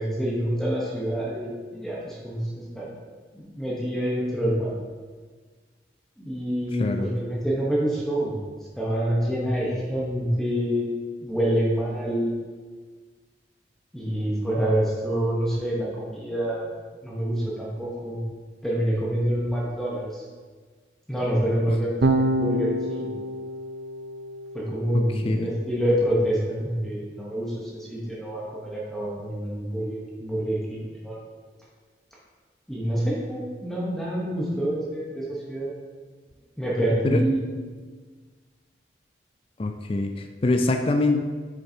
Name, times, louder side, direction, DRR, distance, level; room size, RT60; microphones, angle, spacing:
voice 1, 0.0-2.9 3.3-4.7 6.2-8.4 8.8-10.9 11.2-12.3 13.9-16.7 17.0-18.2 18.6-20.2 21.1-23.1 24.5-31.2 32.7-35.7 36.6-37.4, equal, ahead, -6 dB, 1.0 m, -27 dB
Electric guitar / Bass guitar, 22.0-28.4, right 1 dB, 70° right, 0.6 m, -30 dB
voice 2, 25.1-25.5 37.0-37.2 39.6-41.2, left 2 dB, 30° left, 6 dB, 0.4 m, -24 dB
7.5 x 6.6 x 2.8 m, 1.5 s
head